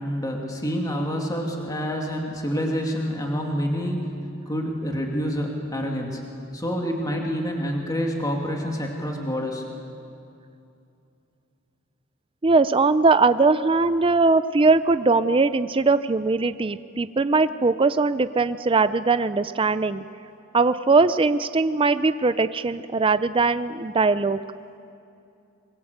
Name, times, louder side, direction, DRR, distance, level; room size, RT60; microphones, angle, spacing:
voice 1, 0.0-4.1 4.5-6.2 6.5-9.6, equal, 20° left, 0 dB, 2.6 m, -27 dB
voice 2, 12.4-20.0 20.5-24.4, right 3 dB, 25° right, 12 dB, 0.5 m, -20 dB
25.5 x 22.5 x 8.0 m, 2.6 s
head